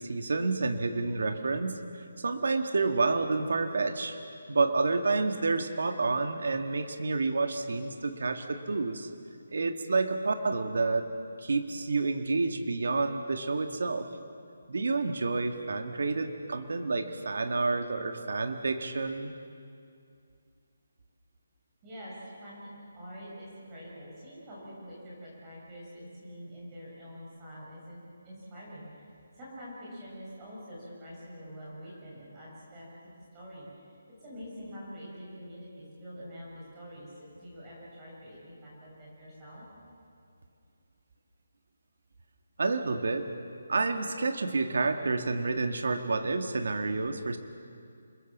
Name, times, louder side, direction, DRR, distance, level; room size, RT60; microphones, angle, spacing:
voice 1, 0.0-1.8 2.2-4.2 4.5-9.1 9.5-11.0 11.4-14.1 14.7-19.3 42.6-43.3 43.7-47.4, right 3 dB, 60° right, 6 dB, 2.0 m, -29 dB
voice 2, 21.8-39.6, equal, 15° right, -6 dB, 6.8 m, -46 dB
28.5 x 21.5 x 7.4 m, 2.4 s
hypercardioid pair, 175°, 0 cm